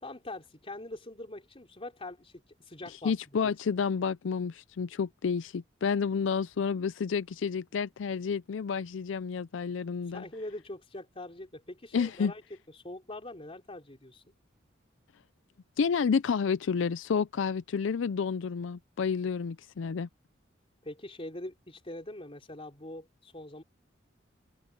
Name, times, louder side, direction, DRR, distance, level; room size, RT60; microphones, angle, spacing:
voice 1, 0.0-3.1 3.4-3.5 10.1-12.4 12.7-14.2 20.8-23.6, left 1 dB, 30° left, 3.5 m, -43 dB
voice 2, 3.0-10.2 11.9-12.3 15.8-20.1, left 6 dB, 80° left, 0.4 m, -30 dB
head